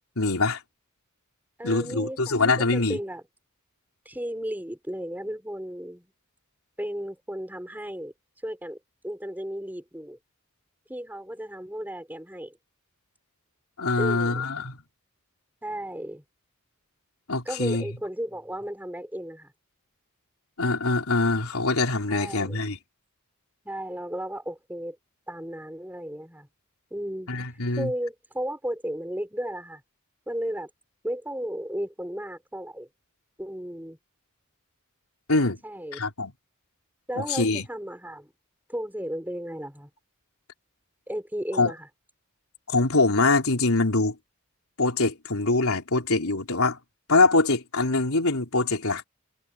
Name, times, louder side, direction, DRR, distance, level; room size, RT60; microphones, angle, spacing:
voice 1, 0.2-0.6 1.6-3.0 13.8-14.8 17.3-17.8 20.6-22.8 27.3-27.9 35.3-35.6 35.9-36.3 37.2-37.7 41.5-41.7 42.7-44.2 44.8-46.8 47.1-49.0, left 3 dB, 85° left, 3.5 m, -23 dB
voice 2, 1.6-3.2 4.0-6.1 6.8-8.8 9.0-10.2 10.9-12.5 14.0-14.5 15.6-16.2 17.4-19.5 22.1-22.6 23.6-25.0 25.3-26.5 26.9-27.3 27.7-29.8 30.3-30.7 31.0-32.9 33.4-34.0 35.6-36.0 37.1-38.3 38.7-39.9 41.1-41.9, equal, 10° right, 4.6 m, -34 dB
head